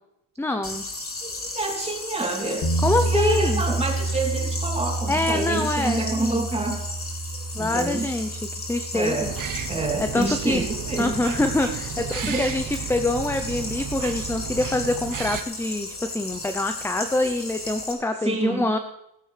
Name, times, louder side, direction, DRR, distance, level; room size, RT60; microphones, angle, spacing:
voice 1, 0.4-0.8 2.8-3.6 5.1-6.5 7.5-8.4 8.7-9.3 10.0-10.6 11.0-12.6 12.9-18.8, left 2 dB, 5° left, 8 dB, 0.7 m, -25 dB
sound 1, 0.6-17.9, left 2 dB, 30° left, 3.5 m, -35 dB
voice 2, 1.2-2.7 3.0-6.8 7.6-8.1 8.9-9.3 9.7-11.1 12.2-12.5 18.2-18.7, right 2 dB, 15° right, -1 dB, 3.4 m, -27 dB
sound 2, 2.6-12.6, right 2 dB, 50° left, 2.2 m, -30 dB
sound 3, 9.2-15.4, right 8 dB, 45° right, 1.1 m, -33 dB
16.0 x 13.5 x 3.4 m, 0.82 s
cardioid pair, 110°, 44 cm